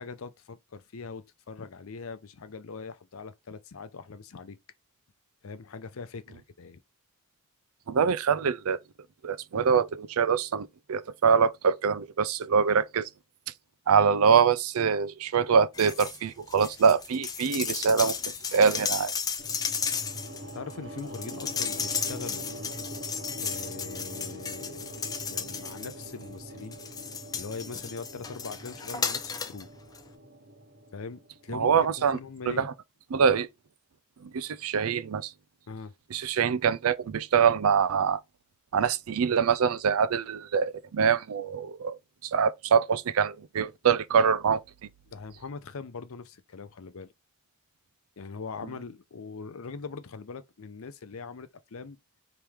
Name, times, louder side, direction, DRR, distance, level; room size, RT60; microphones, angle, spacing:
voice 1, 0.0-4.6 5.4-6.8 20.5-22.5 23.4-26.8 27.3-29.7 30.9-31.7 32.0-32.7 35.7-35.9 45.1-47.1 48.2-52.0, left 4 dB, 70° left, 0.6 m, -41 dB
voice 2, 7.9-8.8 9.2-13.1 13.9-18.2 18.5-19.1 31.5-32.2 32.5-32.7 33.1-33.5 34.2-35.3 36.1-38.2 38.7-44.6, right 6 dB, 75° right, 0.4 m, -24 dB
sound 1, 15.7-16.2 16.5-26.2 26.7-29.6 29.9-30.0, left 6 dB, 15° left, 0.4 m, -34 dB
sound 2, 19.4-31.6, right 1 dB, 55° right, 1.1 m, -43 dB
3.6 x 3.0 x 4.6 m
head